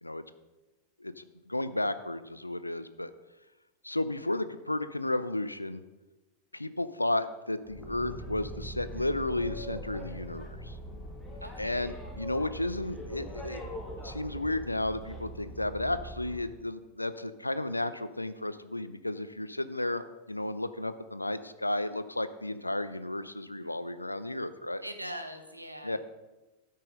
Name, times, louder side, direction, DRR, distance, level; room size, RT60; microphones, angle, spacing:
voice 1, 1.0-3.1 3.8-5.8 6.5-10.8 11.6-13.6 14.0-24.8 25.8-26.0, left 1 dB, 85° left, 13 dB, 0.5 m, -33 dB
Boat Water vehicle, 7.6-16.5, right 1 dB, 10° left, 1.8 m, -42 dB
voice 2, 11.4-11.9 24.8-25.9, equal, 90° right, 5 dB, 1.0 m, -41 dB
13.0 x 5.7 x 5.2 m, 1.1 s
figure-of-eight pair, 90°, 0 cm